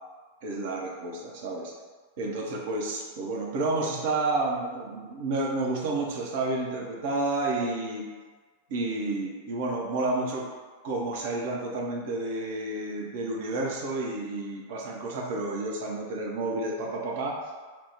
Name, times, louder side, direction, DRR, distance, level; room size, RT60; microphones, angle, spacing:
voice 1, 0.4-1.7 2.2-8.1 8.7-10.5 10.8-17.4, right 2 dB, 50° right, -2 dB, 0.6 m, -30 dB
3.0 x 2.0 x 3.4 m, 1.4 s
figure-of-eight pair, 90°, 0 cm